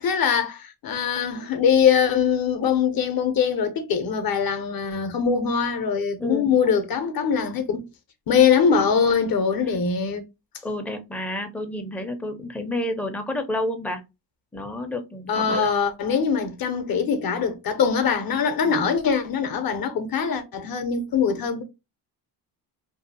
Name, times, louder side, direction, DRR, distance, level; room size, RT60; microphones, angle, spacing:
voice 1, 0.0-7.8 8.3-10.2 15.3-21.6, left 6 dB, 55° left, 0.6 m, -22 dB
voice 2, 6.2-6.6 10.6-14.0 14.5-15.7 18.6-18.8, left 1 dB, 5° left, 0.4 m, -30 dB
2.6 x 2.3 x 2.6 m
cardioid pair, 110°, 43 cm